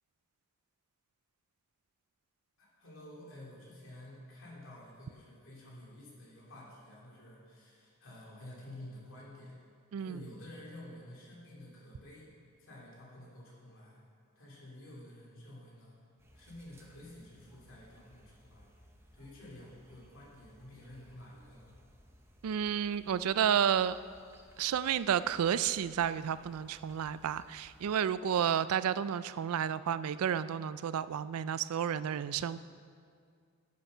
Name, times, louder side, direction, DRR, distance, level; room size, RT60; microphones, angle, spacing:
voice 1, 2.6-9.5 10.0-12.3 12.6-14.0 14.3-16.0 16.3-18.7 19.1-21.7, left 1 dB, 60° left, -4 dB, 3.0 m, -51 dB
voice 2, 9.9-10.3 22.4-24.0 24.6-32.6, right 8 dB, 80° right, 15 dB, 0.4 m, -31 dB
sound 1, 16.2-28.0, equal, 10° right, 0.8 m, -61 dB
11.5 x 8.2 x 5.5 m, 2.2 s
head